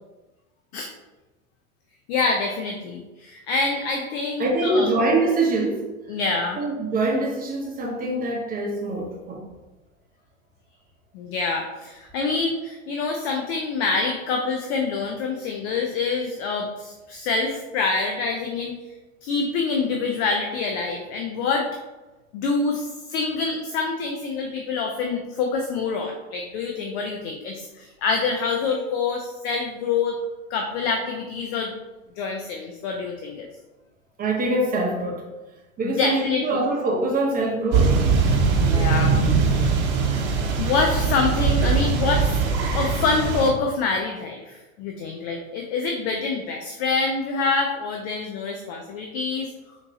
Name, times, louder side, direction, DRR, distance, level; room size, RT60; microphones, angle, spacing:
voice 1, 2.1-4.9 6.1-6.6 11.1-18.8 19.2-21.7 22.3-30.2 30.5-31.7 32.2-33.5 35.8-36.6 38.6-39.8 40.6-42.4 42.7-49.5, left 4 dB, 50° left, 2 dB, 0.6 m, -26 dB
voice 2, 4.4-5.9 6.6-9.4 34.2-35.2 35.8-38.0, right 2 dB, 20° right, -1 dB, 0.8 m, -24 dB
sound 1, 37.7-43.5, right 5 dB, 60° right, 1.0 m, -21 dB
4.3 x 2.8 x 2.7 m, 1.1 s
hypercardioid pair, 95°, 41 cm